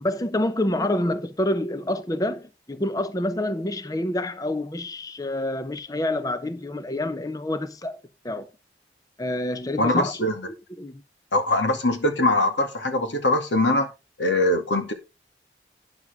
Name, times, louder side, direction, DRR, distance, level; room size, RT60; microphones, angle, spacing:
voice 1, 0.0-8.0 8.2-8.5 9.2-10.3 10.7-11.0, left 1 dB, 20° left, 0.7 m, -27 dB
voice 2, 9.8-10.5 11.3-13.9 14.2-14.9, left 1 dB, 85° left, 2.5 m, -22 dB
12.0 x 9.6 x 3.6 m
head